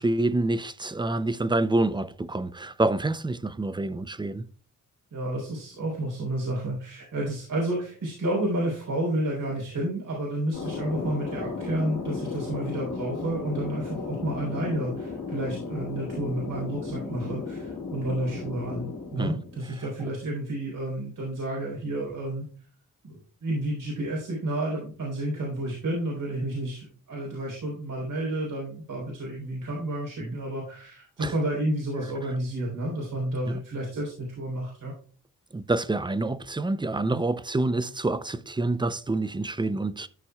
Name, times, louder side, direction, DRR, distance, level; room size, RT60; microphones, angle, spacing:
voice 1, 0.0-4.5 19.2-19.4 30.2-30.4 31.2-31.3 33.5-33.6 35.5-40.1, right 2 dB, 15° right, 0.5 m, -27 dB
voice 2, 5.1-18.9 19.1-22.5 23.0-34.9 37.1-37.2, right 1 dB, 75° right, 3.9 m, -30 dB
Thunder, 10.5-19.8, left 4 dB, 65° left, 2.5 m, -35 dB
13.0 x 5.9 x 2.3 m
cardioid pair, 90°, 33 cm